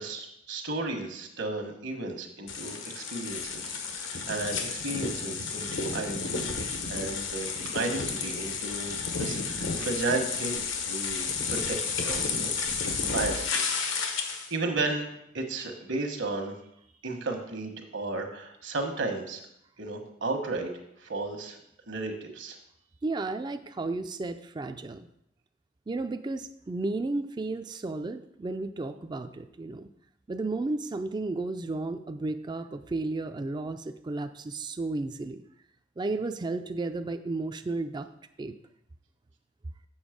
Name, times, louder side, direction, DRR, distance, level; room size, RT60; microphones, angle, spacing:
voice 1, 0.0-6.5 6.9-12.5 12.8-13.6 14.0-16.5 17.0-19.4 19.8-20.7 21.0-21.6 21.9-22.6, right 3 dB, 70° right, 4 dB, 1.3 m, -34 dB
sound 1, 2.5-14.5, left 5 dB, 85° left, 1.1 m, -32 dB
voice 2, 23.0-25.1 25.9-29.9 30.3-35.4 36.0-38.1 38.4-38.6, right 2 dB, 25° right, 8 dB, 0.3 m, -33 dB
7.1 x 6.5 x 5.1 m, 0.77 s
head